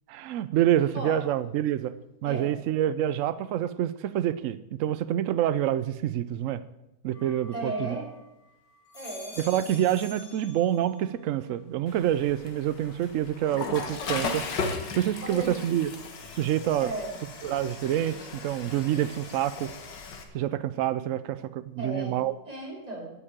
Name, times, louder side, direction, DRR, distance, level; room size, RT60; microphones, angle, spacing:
voice 1, 0.1-1.9 2.2-6.6 7.0-7.7 9.5-14.5 14.9-15.9 16.3-16.9 17.4-19.7 20.3-22.3, right 11 dB, 85° right, 15 dB, 0.6 m, -27 dB
sound 1, 7.1-8.3 8.7-11.1 11.5-12.1, left 2 dB, 50° left, 3.8 m, -47 dB
voice 2, 7.5-8.1 8.9-9.9 15.2-15.6 16.8-17.1 21.8-22.2 22.5-23.1, right 2 dB, 20° right, -4 dB, 4.0 m, -35 dB
Water / Toilet flush, 11.9-20.2, left 4 dB, 80° left, 2.0 m, -37 dB
9.0 x 8.4 x 8.8 m, 0.91 s
omnidirectional pair, 1.9 m